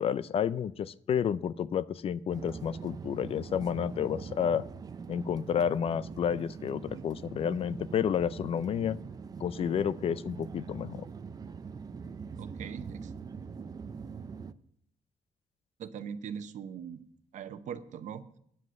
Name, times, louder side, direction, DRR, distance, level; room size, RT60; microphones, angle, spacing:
voice 1, 0.0-4.7 5.1-9.0 9.4-11.1, left 8 dB, 50° left, 18 dB, 0.4 m, -30 dB
sound 1, 2.3-14.5, right 5 dB, 30° right, 0.4 m, -43 dB
voice 2, 12.4-13.1 15.8-17.0 17.3-18.2, right 7 dB, 75° right, 11 dB, 0.8 m, -41 dB
9.6 x 7.6 x 6.3 m, 0.68 s
wide cardioid pair, 155°, 13 cm